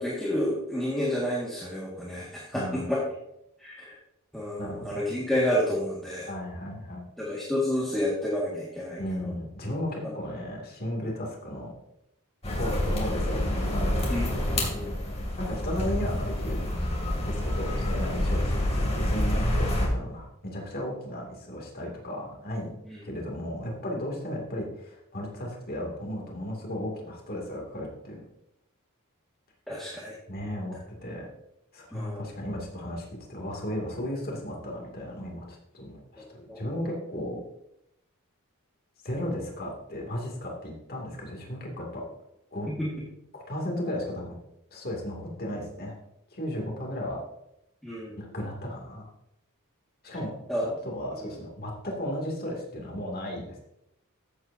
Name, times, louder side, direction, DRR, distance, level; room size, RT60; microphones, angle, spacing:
voice 1, 0.0-3.0 3.6-4.0 4.3-6.3 7.2-9.0 14.1-14.9 17.7-17.8 22.9-23.0 29.7-30.1 31.9-32.2 36.5-36.6 42.7-42.9 47.8-48.2 50.5-50.7 51.2-51.3, left 1 dB, ahead, -7 dB, 1.8 m, -30 dB
voice 2, 2.5-2.9 4.6-5.0 6.3-7.0 9.0-11.7 12.6-13.4 13.7-14.0 14.6-14.9 15.4-16.7 17.2-22.7 23.0-28.2 30.3-30.8 31.0-31.3 31.7-37.4 39.0-42.0 42.5-42.7 43.3-44.4 44.7-45.9 46.3-47.2 48.2-49.1 50.0-50.4 50.6-53.6, left 1 dB, 45° left, -1 dB, 2.5 m, -35 dB
sound 1, 12.4-19.9, left 1 dB, 30° left, 2.5 m, -28 dB
14.0 x 7.8 x 2.7 m, 0.82 s
head